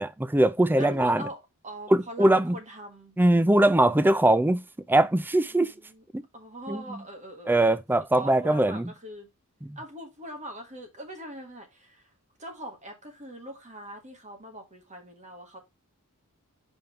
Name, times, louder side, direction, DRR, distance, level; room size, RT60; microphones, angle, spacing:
voice 1, 0.0-1.2 1.9-2.5 3.2-4.6 4.9-5.7 6.1-6.2 6.7-7.0 7.5-8.8 9.6-9.8, right 1 dB, 10° right, 0.4 m, -21 dB
voice 2, 0.7-3.2 5.5-6.0 6.3-9.3 9.7-12.1 12.4-15.6, right 1 dB, 35° right, 1.7 m, -42 dB
5.3 x 3.6 x 5.6 m
head